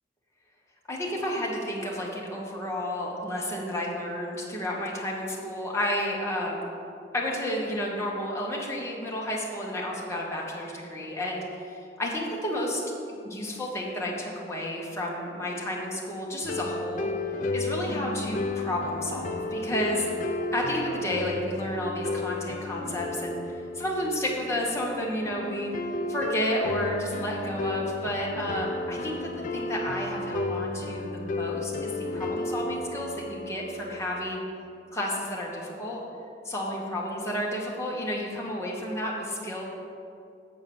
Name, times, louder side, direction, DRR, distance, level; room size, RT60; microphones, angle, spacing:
voice 1, 0.9-6.7 7.1-12.8 13.2-17.1 17.5-20.1 20.5-25.7 26.1-34.4 34.9-36.0 36.4-39.6, left 1 dB, 15° left, -4 dB, 1.4 m, -31 dB
sound 1, 16.4-34.4, left 2 dB, 45° left, 0.5 m, -33 dB
7.5 x 5.1 x 7.1 m, 2.5 s
head